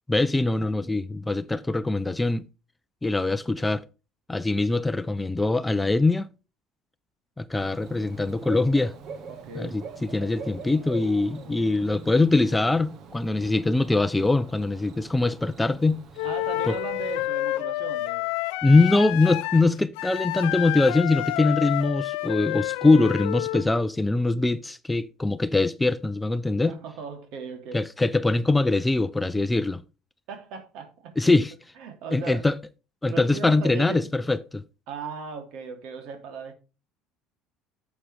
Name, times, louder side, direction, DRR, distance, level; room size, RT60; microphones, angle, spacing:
voice 1, 0.1-2.4 3.0-3.8 4.3-6.3 7.4-8.9 9.6-9.7 10.1-16.0 16.7-16.8 18.6-26.7 27.7-29.8 31.2-31.5 32.1-32.6 33.0-34.6, left 2 dB, 10° left, 0.6 m, -22 dB
Bird / Cricket, 7.5-17.3, right 5 dB, 55° right, 1.3 m, -44 dB
voice 2, 9.3-9.8 16.2-18.3 26.6-27.8 30.3-31.4 31.8-32.4 33.1-34.1 34.9-36.5, right 5 dB, 70° right, 3.1 m, -37 dB
Wind instrument woodwind instrument, 16.2-23.7, left 18 dB, 85° left, 0.6 m, -29 dB
11.0 x 7.5 x 3.4 m
cardioid pair, 120°, 0 cm